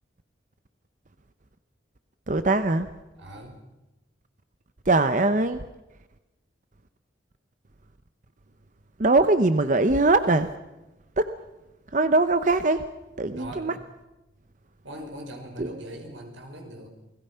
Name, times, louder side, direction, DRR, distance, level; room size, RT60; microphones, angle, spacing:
voice 1, 2.3-2.9 4.8-5.6 9.0-10.5 11.2-11.3 11.9-12.8 13.2-13.7 15.6-15.7, right 2 dB, 45° right, 10 dB, 0.8 m, -21 dB
voice 2, 3.1-3.6 13.4-13.7 14.8-16.9, right 1 dB, 90° right, 3 dB, 5.7 m, -40 dB
29.0 x 20.5 x 5.7 m, 1.0 s
head